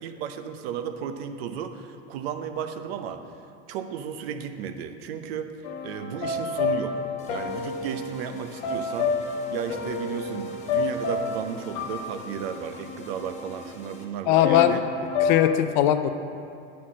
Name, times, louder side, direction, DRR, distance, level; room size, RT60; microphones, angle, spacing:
voice 1, 0.0-3.2 3.7-5.5 5.8-7.0 7.2-9.1 9.5-14.8, right 8 dB, 60° right, 8 dB, 0.8 m, -34 dB
sound 1, 5.6-13.6 14.4-15.4, left 5 dB, 60° left, 1.1 m, -30 dB
sound 2, 7.2-14.0, left 3 dB, 20° left, 0.8 m, -46 dB
voice 2, 14.3-14.8 15.2-16.1, left 11 dB, 45° left, 9 dB, 0.4 m, -20 dB
9.3 x 4.4 x 7.3 m, 2.5 s
supercardioid pair, 160°, 34 cm